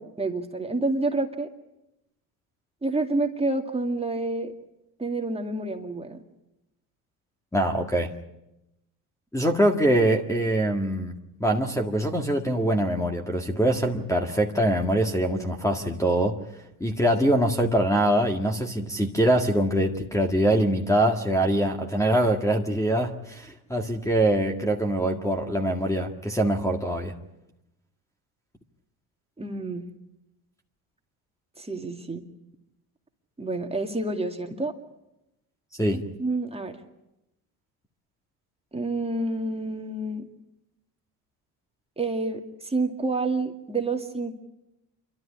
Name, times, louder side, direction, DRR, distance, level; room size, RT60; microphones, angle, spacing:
voice 1, 0.0-1.5 2.8-4.5 5.0-6.2 29.4-29.9 31.6-32.2 33.4-34.7 36.2-36.8 38.7-40.3 42.0-44.3, right 2 dB, 15° right, 3 dB, 2.2 m, -28 dB
voice 2, 7.5-8.1 9.3-16.4 16.8-27.1 35.8-36.0, right 1 dB, 10° left, 3 dB, 1.9 m, -23 dB
27.5 x 12.5 x 10.0 m, 0.91 s
supercardioid pair, 90°, 40 cm